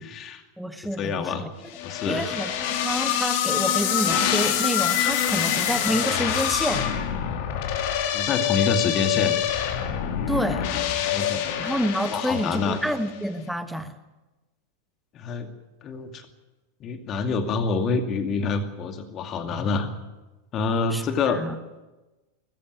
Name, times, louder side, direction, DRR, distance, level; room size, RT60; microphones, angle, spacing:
voice 1, 0.0-0.4 1.0-1.5 1.8-2.3 8.1-9.4 11.0-11.4 12.1-12.8 15.1-15.5 15.8-16.2 16.8-19.9 20.5-21.4, left 4 dB, 30° left, 7 dB, 2.4 m, -27 dB
voice 2, 0.6-1.5 2.1-6.9 10.3-10.7 11.6-13.9 20.9-21.6, equal, ahead, 9 dB, 1.4 m, -28 dB
sound 1, 1.7-13.0, left 9 dB, 45° left, 2.2 m, -25 dB
20.5 x 15.0 x 9.2 m, 1.1 s
figure-of-eight pair, 90°, 0 cm